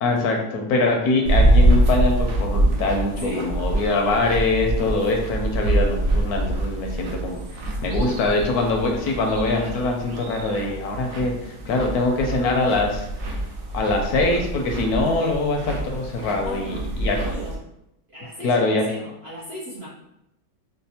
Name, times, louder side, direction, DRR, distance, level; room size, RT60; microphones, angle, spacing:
voice 1, 0.0-13.1 13.7-17.2 18.4-18.8, left 2 dB, 70° left, 2 dB, 1.0 m, -23 dB
sound 1, 1.2-17.6, right 1 dB, 80° right, 1.3 m, -24 dB
voice 2, 3.2-3.6 16.4-17.6 18.1-19.9, equal, 60° right, -7 dB, 0.6 m, -36 dB
5.0 x 2.0 x 2.7 m, 0.85 s
omnidirectional pair, 1.9 m